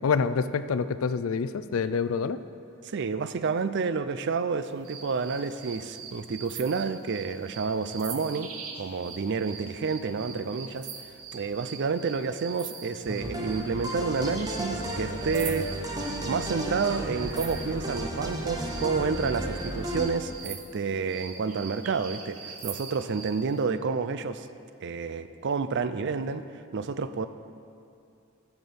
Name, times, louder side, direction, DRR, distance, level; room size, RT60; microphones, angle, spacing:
voice 1, 0.0-2.4, left 5 dB, 70° left, 13 dB, 0.4 m, -27 dB
voice 2, 2.8-10.9 11.3-15.9 16.2-24.5 24.8-26.4 26.7-27.3, right 5 dB, 55° right, 12 dB, 0.4 m, -29 dB
sound 1, 4.8-18.1 18.7-23.4, right 6 dB, 80° right, 1.0 m, -42 dB
sound 2, 13.1-20.1, right 1 dB, 20° right, 1.0 m, -33 dB
9.2 x 8.1 x 6.9 m, 2.4 s
head